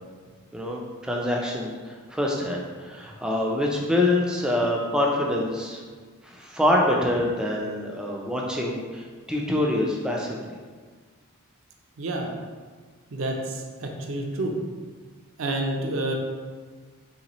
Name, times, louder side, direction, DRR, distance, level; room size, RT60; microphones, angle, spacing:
voice 1, 0.5-5.8 6.2-10.4, left 1 dB, 5° right, -2 dB, 0.4 m, -25 dB
voice 2, 12.0-12.3 13.1-14.6 15.4-16.1, right 1 dB, 65° right, 2 dB, 0.5 m, -29 dB
4.0 x 3.3 x 3.0 m, 1.5 s
head